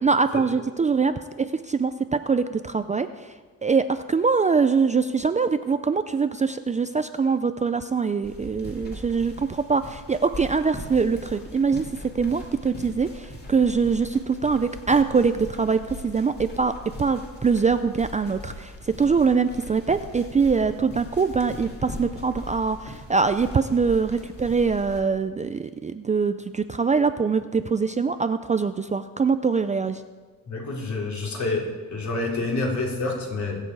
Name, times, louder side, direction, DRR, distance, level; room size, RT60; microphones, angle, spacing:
voice 1, 0.0-3.3 3.6-11.9 12.1-16.7 17.0-30.0, right 5 dB, 20° right, 10 dB, 0.4 m, -23 dB
sound 1, 8.2-25.0, left 1 dB, 30° left, 2.8 m, -40 dB
voice 2, 30.5-33.6, left 3 dB, 55° left, -2 dB, 3.7 m, -28 dB
22.0 x 7.6 x 4.7 m, 1.4 s
cardioid pair, 115°, 34 cm